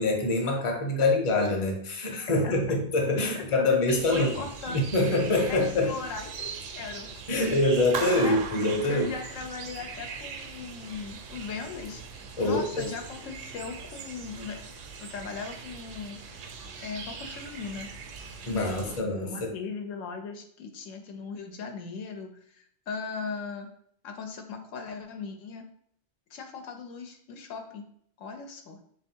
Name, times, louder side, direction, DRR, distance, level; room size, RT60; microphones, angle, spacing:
voice 1, 0.0-4.3 4.7-5.9 7.3-9.1 12.4-12.9 18.5-19.5, left 2 dB, 30° left, 1 dB, 0.7 m, -25 dB
voice 2, 2.3-2.8 3.5-5.2 5.5-7.2 8.1-8.4 8.9-14.7 15.0-16.2 16.8-17.9 18.5-23.7 24.0-25.6 26.3-27.9 28.2-28.8, left 5 dB, 90° left, 5 dB, 1.0 m, -38 dB
sound 1, 3.9-19.0, right 5 dB, 80° right, 1.0 m, -42 dB
Clapping, 7.9-9.8, right 6 dB, 65° right, 0.7 m, -36 dB
3.5 x 2.6 x 4.4 m, 0.65 s
omnidirectional pair, 1.3 m